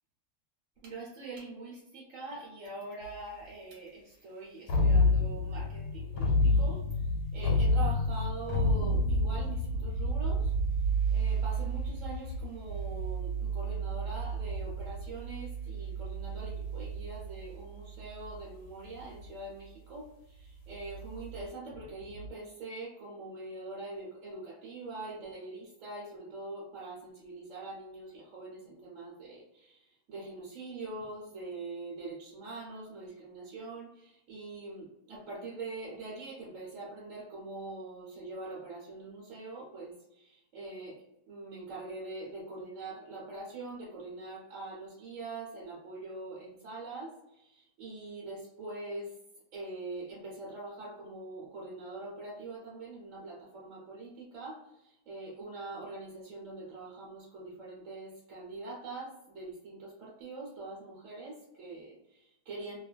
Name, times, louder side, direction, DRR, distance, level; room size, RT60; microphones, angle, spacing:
voice 1, 0.8-6.8 7.3-10.5 11.1-49.1 49.5-62.8, right 2 dB, 60° right, -6 dB, 1.2 m, -43 dB
sound 1, 3.0-3.1 4.7-18.4 18.9-19.3 20.7-22.3, left 1 dB, 85° left, 1.1 m, -30 dB
2.6 x 2.4 x 2.3 m, 0.86 s
omnidirectional pair, 1.7 m